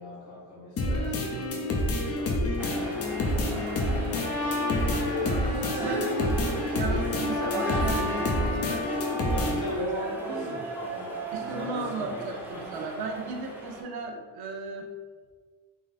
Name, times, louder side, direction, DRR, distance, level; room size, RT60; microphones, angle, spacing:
voice 1, 0.0-3.3 3.6-3.8 4.7-6.1 9.3-13.1, left 2 dB, 80° left, -10 dB, 1.5 m, -39 dB
sound 1, 0.8-9.8, left 1 dB, 40° left, 0.8 m, -28 dB
voice 2, 0.8-1.4 5.2-8.8 9.8-9.9 10.3-10.5 11.3-14.9, right 4 dB, 75° right, 2 dB, 0.9 m, -36 dB
sound 2, 2.6-13.8, right 2 dB, 5° right, 0.8 m, -36 dB
Trumpet, 4.1-9.6, left 3 dB, 60° left, 1.5 m, -35 dB
3.8 x 3.1 x 4.1 m, 1.5 s
cardioid pair, 130°, 39 cm